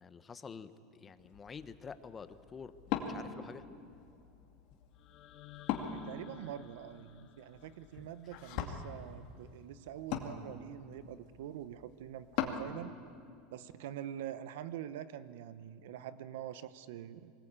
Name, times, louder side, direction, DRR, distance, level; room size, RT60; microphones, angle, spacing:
voice 1, 0.0-3.6 8.0-8.1, left 5 dB, 20° left, 12 dB, 0.9 m, -48 dB
Wood, 1.2-12.7, left 8 dB, 55° left, 2.3 m, -42 dB
sound 1, 4.9-9.0, left 10 dB, 40° left, 2.1 m, -56 dB
voice 2, 5.9-13.0 13.5-17.3, right 11 dB, 80° right, 14 dB, 0.9 m, -45 dB
23.5 x 19.5 x 8.8 m, 2.5 s
supercardioid pair, 140°, 0 cm